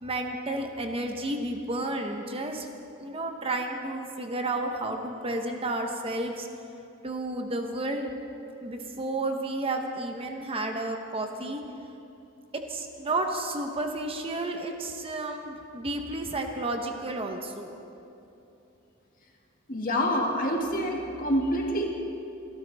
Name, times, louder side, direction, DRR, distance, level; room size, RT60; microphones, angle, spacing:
voice 1, 0.0-2.7 3.0-6.5 7.0-8.1 8.6-11.6 12.5-17.7, right 2 dB, 30° right, 4 dB, 0.9 m, -31 dB
voice 2, 19.7-22.0, equal, 45° left, 0 dB, 1.9 m, -27 dB
25.0 x 12.5 x 3.4 m, 2.8 s
head